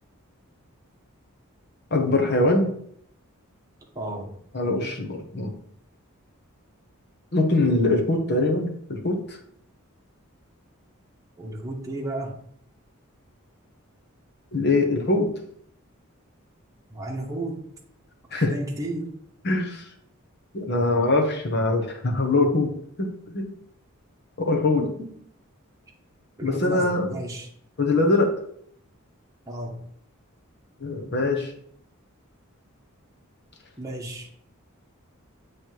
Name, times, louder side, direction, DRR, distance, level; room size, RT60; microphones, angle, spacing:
voice 1, 1.9-2.7 4.5-5.5 7.3-9.4 14.5-15.3 18.3-18.5 19.4-19.8 20.5-22.7 23.0-23.5 24.4-24.8 26.4-27.2 27.8-28.3 30.8-31.5, left 2 dB, 50° left, 3 dB, 1.0 m, -22 dB
voice 2, 3.9-4.3 11.4-12.3 16.9-17.6 18.3-19.1 24.8-25.1 26.4-27.5 29.5-29.8 33.8-34.3, right 1 dB, 15° right, -2 dB, 1.0 m, -33 dB
7.6 x 3.3 x 4.6 m, 0.66 s
head